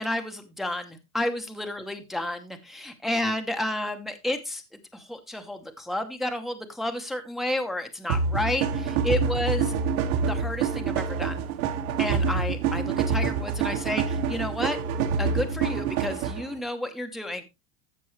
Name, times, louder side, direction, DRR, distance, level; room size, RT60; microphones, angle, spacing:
voice 1, 0.0-4.6 4.9-9.7 10.2-11.4 12.0-14.8 15.2-17.4, left 1 dB, ahead, 6 dB, 0.9 m, -31 dB
sound 1, 8.1-16.5, right 5 dB, 70° right, 2.3 m, -26 dB
14.0 x 5.9 x 3.2 m, 0.24 s
supercardioid pair, 150°, 44 cm